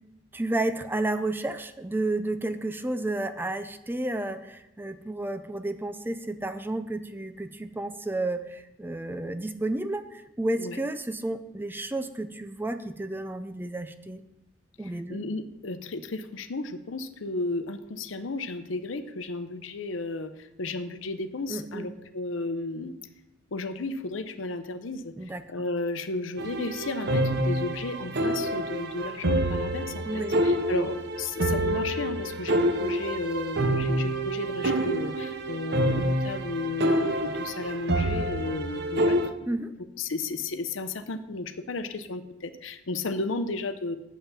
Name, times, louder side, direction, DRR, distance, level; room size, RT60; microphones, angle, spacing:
voice 1, 0.3-14.2 14.8-15.2 21.5-21.9 25.2-25.4 30.0-30.4 39.5-39.7, right 2 dB, 10° right, 9 dB, 0.4 m, -31 dB
voice 2, 15.1-23.0 23.5-25.1 25.5-39.5 40.0-43.9, left 3 dB, 75° left, 10 dB, 0.7 m, -33 dB
sound 1, 26.4-39.3, right 1 dB, 55° right, 0.8 m, -27 dB
8.6 x 5.7 x 6.9 m, 0.90 s
head